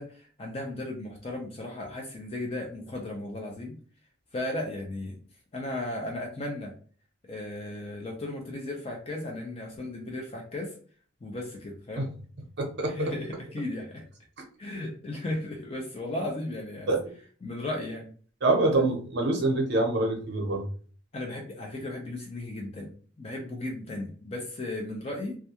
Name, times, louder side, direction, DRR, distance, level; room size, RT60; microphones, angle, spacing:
voice 1, 0.0-3.8 4.3-5.2 5.5-6.7 7.2-10.7 11.2-12.1 12.8-14.0 14.6-17.0 17.4-18.1 21.1-25.4, left 1 dB, 30° left, 0 dB, 0.4 m, -35 dB
voice 2, 12.6-12.9 16.9-17.0 18.4-20.6, right 2 dB, 55° right, 1 dB, 0.7 m, -25 dB
2.3 x 2.2 x 2.8 m, 0.43 s
head